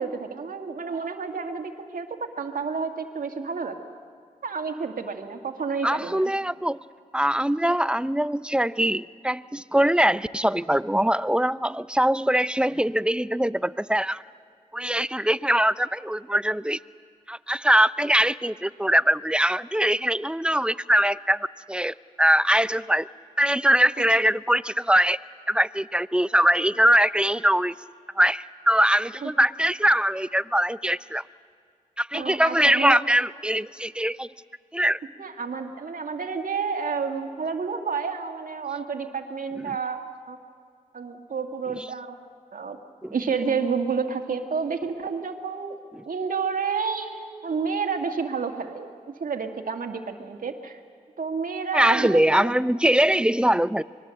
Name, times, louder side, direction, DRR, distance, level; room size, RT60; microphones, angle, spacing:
voice 1, 0.0-3.8 4.4-6.3 29.2-29.3 32.1-33.0 35.2-40.4 40.9-42.2 42.5-42.8 43.1-45.8 46.1-50.8 51.2-52.5, right 5 dB, 65° right, 5 dB, 2.1 m, -30 dB
voice 2, 5.8-6.8 7.1-14.2 14.7-16.8 17.3-23.1 23.4-25.2 25.5-27.7 28.2-31.2 32.0-34.3 34.7-35.0 39.6-39.8 43.0-43.1 46.0-46.1 51.7-53.8, right 1 dB, 5° right, 17 dB, 0.6 m, -22 dB
25.0 x 22.0 x 7.8 m, 2.3 s
cardioid pair, 50°, 15 cm